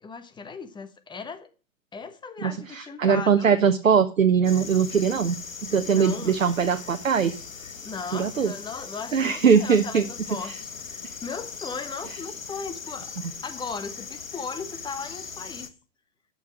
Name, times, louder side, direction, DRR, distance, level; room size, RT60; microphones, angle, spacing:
voice 1, 0.0-1.5 1.9-3.6 5.9-6.4 7.8-10.7 11.0-13.1 13.4-15.7, left 5 dB, 10° left, 1.2 m, -37 dB
voice 2, 2.4-5.3 5.6-7.3 8.1-8.5 9.1-10.0 10.5-10.6, right 6 dB, 80° right, 0.9 m, -21 dB
sound 1, 4.4-15.7, left 5 dB, 85° left, 1.2 m, -39 dB
13.0 x 5.7 x 6.3 m
figure-of-eight pair, 100°, 39 cm